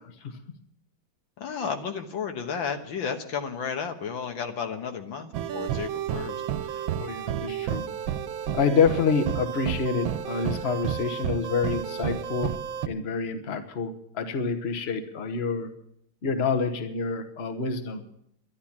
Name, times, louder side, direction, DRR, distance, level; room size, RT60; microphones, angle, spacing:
voice 1, 1.4-6.4 6.7-6.8, left 6 dB, 75° left, 5 dB, 1.9 m, -33 dB
sound 1, 5.3-12.9, right 9 dB, 80° right, 1.5 m, -31 dB
voice 2, 7.0-7.9 8.5-12.5 12.8-15.7 16.2-18.0, left 5 dB, 40° left, 7 dB, 1.2 m, -27 dB
12.0 x 11.5 x 7.3 m, 0.73 s
omnidirectional pair, 2.2 m